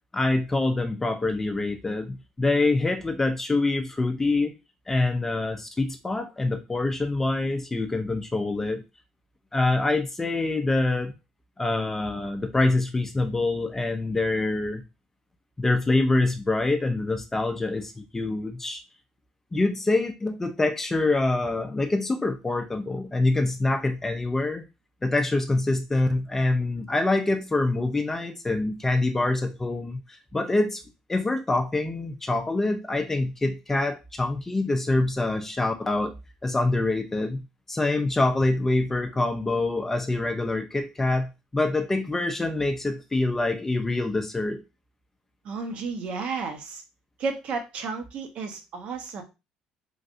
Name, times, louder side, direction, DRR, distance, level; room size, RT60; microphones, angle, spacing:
voice 1, 0.1-4.5 4.9-8.8 9.5-11.1 11.6-14.8 15.6-18.8 19.5-24.6 25.0-30.8 31.1-36.1 36.4-44.6, left 2 dB, 15° left, 5 dB, 0.4 m, -25 dB
voice 2, 45.4-46.8 47.2-49.2, right 4 dB, 60° right, 5 dB, 0.8 m, -32 dB
3.2 x 2.6 x 2.5 m, 0.26 s
cardioid pair, 105°, 2 cm